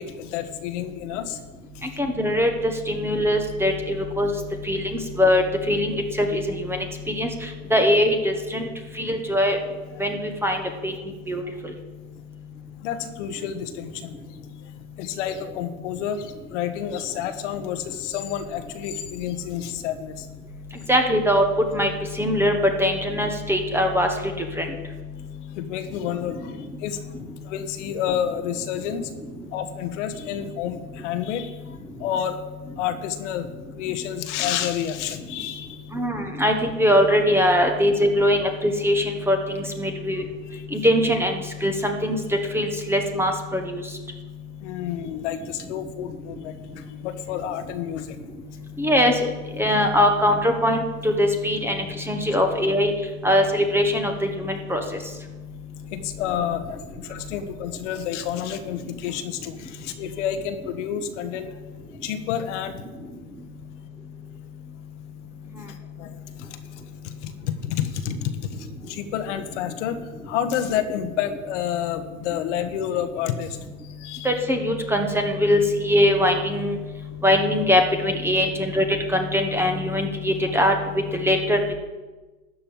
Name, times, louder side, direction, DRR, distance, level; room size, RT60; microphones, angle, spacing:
voice 1, 0.0-1.4 12.8-14.1 15.0-20.3 25.5-26.5 26.8-27.0 27.4-29.1 29.5-31.5 32.0-32.4 32.8-33.5 33.8-35.8 40.5-40.6 44.6-46.5 47.0-48.1 55.9-61.5 62.0-62.8 66.0-66.5 67.0-73.6 74.0-74.3, left 9 dB, 55° left, 8 dB, 1.2 m, -29 dB
voice 2, 2.0-2.5 2.9-4.3 4.7-4.9 5.2-6.8 7.1-7.3 7.7-8.7 9.0-9.6 10.0-10.6 10.8-10.9 11.3-11.4 20.9-21.4 21.7-21.9 22.2-22.5 22.8-24.1 24.6-24.7 35.9-40.2 40.7-42.2 42.5-43.8 48.8-49.1 49.6-52.9 53.2-54.8 74.2-76.8 77.2-80.7 81.1-81.7, equal, 5° right, 4 dB, 1.2 m, -21 dB
13.0 x 5.5 x 8.6 m, 1.2 s
hypercardioid pair, 120°, 43 cm